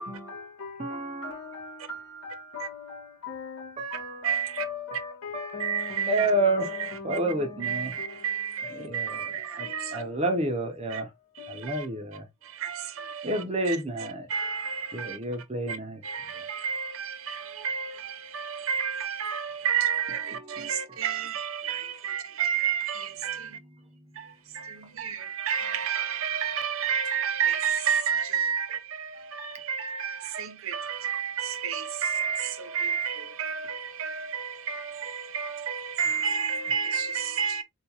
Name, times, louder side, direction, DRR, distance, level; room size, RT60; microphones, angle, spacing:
voice 1, 0.0-8.5 9.6-10.2 11.4-12.0, left 5 dB, 80° left, 1.6 m, -41 dB
voice 2, 0.8-1.8 3.8-4.5 4.9-6.7 7.0-7.9 8.6-11.1 11.5-12.3 13.2-14.3 14.9-16.0 16.3-16.4 20.3-21.0 23.4-24.3, right 1 dB, 30° right, 0.8 m, -31 dB
voice 3, 4.2-4.7 5.6-6.3 6.8-7.2 7.6-10.0 10.9-11.0 11.4-11.9 12.4-13.8 14.3-15.2 15.7-15.8 16.0-23.6 24.2-37.6, right 7 dB, 70° right, 0.6 m, -30 dB
3.6 x 2.5 x 2.9 m
head